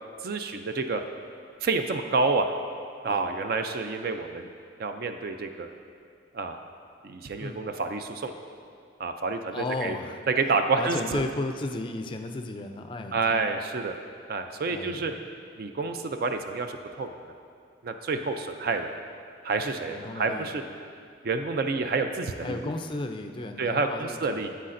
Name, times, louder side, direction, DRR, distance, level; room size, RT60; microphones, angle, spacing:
voice 1, 0.2-1.0 1.6-2.5 3.0-4.5 4.8-5.7 6.3-6.6 7.0-8.3 9.0-10.0 10.4-11.2 13.1-14.0 14.3-15.1 15.6-17.1 17.8-18.9 19.4-20.6 21.2-22.6 23.6-24.5, right 4 dB, 50° right, 7 dB, 0.4 m, -28 dB
voice 2, 9.5-10.2 10.8-13.5 14.6-15.2 19.9-20.5 22.4-24.5, left 2 dB, 25° left, 6 dB, 0.3 m, -34 dB
9.7 x 8.3 x 2.6 m, 2.4 s
head